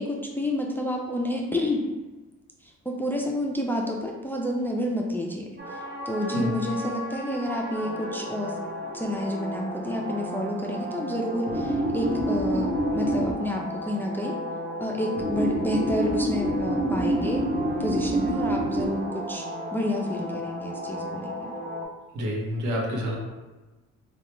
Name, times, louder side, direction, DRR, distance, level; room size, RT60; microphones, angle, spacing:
voice 1, 0.0-1.8 2.6-5.8 6.1-8.6 8.9-14.4 14.8-17.4 17.8-19.4 19.7-21.3, left 1 dB, 5° left, 0 dB, 0.4 m, -29 dB
sound 1, 5.6-21.8, right 1 dB, 35° right, 0.7 m, -30 dB
voice 2, 22.1-23.2, equal, 75° right, -2 dB, 0.9 m, -28 dB
3.2 x 2.3 x 2.9 m, 1.2 s
cardioid pair, 90°, 30 cm